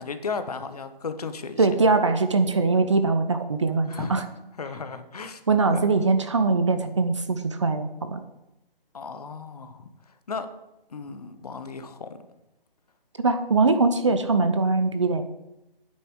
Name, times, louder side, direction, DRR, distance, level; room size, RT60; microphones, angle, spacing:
voice 1, 0.0-1.7 3.9-4.2 4.6-5.4 5.7-5.9 8.9-10.5 10.9-12.1, left 5 dB, 40° left, 10 dB, 0.9 m, -35 dB
voice 2, 1.6-4.2 5.5-8.2 13.2-15.2, right 3 dB, 30° right, 9 dB, 0.7 m, -22 dB
9.5 x 6.8 x 7.8 m, 0.91 s
hypercardioid pair, 165°, 29 cm